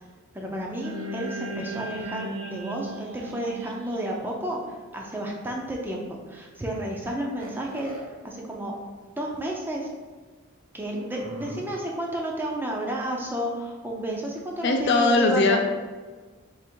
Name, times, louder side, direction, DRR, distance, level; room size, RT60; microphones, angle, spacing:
voice 1, 0.3-7.9 8.2-8.7 9.1-9.9 10.7-15.6, right 1 dB, 10° right, -1 dB, 0.5 m, -31 dB
sound 1, 0.8-5.2, right 1 dB, 65° right, 0.4 m, -37 dB
sound 2, 7.4-8.0 9.0-9.1 9.3-9.4 10.9-11.6, right 2 dB, 90° right, 0.9 m, -39 dB
voice 2, 14.6-15.6, left 3 dB, 55° left, 4 dB, 0.4 m, -20 dB
3.5 x 2.9 x 4.5 m, 1.4 s
head